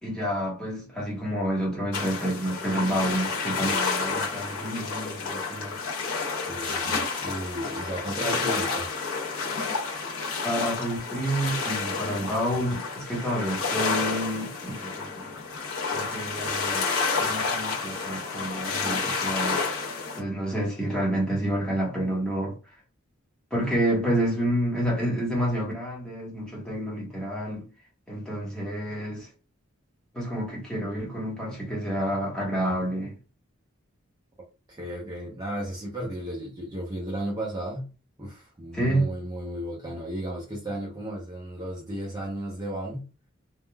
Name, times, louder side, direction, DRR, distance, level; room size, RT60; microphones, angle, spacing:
voice 1, 0.0-5.8 10.4-15.3 15.9-16.9 17.2-19.6 20.2-22.6 23.5-27.7 28.1-29.3 30.1-33.1 38.7-39.1, right 1 dB, 5° left, 1.1 m, -29 dB
sound 1, 1.9-20.2, left 4 dB, 80° left, 0.7 m, -30 dB
voice 2, 6.5-8.9 34.7-37.9 38.2-43.1, right 1 dB, 20° right, 0.7 m, -34 dB
3.5 x 2.2 x 2.2 m
head